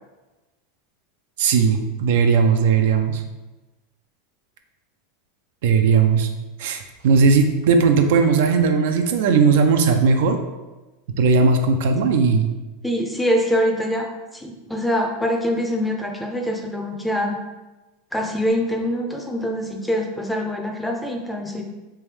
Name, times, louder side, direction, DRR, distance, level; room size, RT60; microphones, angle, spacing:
voice 1, 1.4-3.2 5.6-6.3 6.6-10.4 11.2-12.5, right 5 dB, 75° right, 6 dB, 0.4 m, -17 dB
voice 2, 12.8-17.4 18.1-21.6, equal, 5° left, 2 dB, 0.5 m, -24 dB
3.3 x 2.6 x 3.3 m, 1.1 s
supercardioid pair, 125°, 0 cm